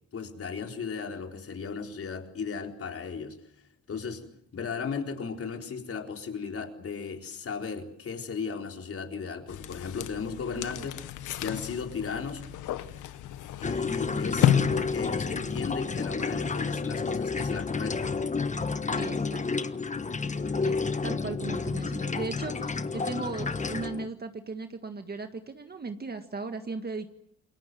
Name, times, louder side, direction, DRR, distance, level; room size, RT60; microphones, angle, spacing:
voice 1, 0.1-3.4 3.9-10.9 11.4-12.4 13.6-18.1, left 5 dB, 50° left, 3 dB, 4.1 m, -36 dB
sound 1, 9.5-16.1, left 10 dB, 80° left, 1.4 m, -31 dB
voice 2, 10.5-10.9 19.0-19.4 20.6-27.1, right 4 dB, 30° right, 7 dB, 1.7 m, -37 dB
sound 2, 13.6-24.1, left 4 dB, 25° left, 1.2 m, -30 dB
27.5 x 22.0 x 7.7 m, 0.73 s
cardioid pair, 90°, 30 cm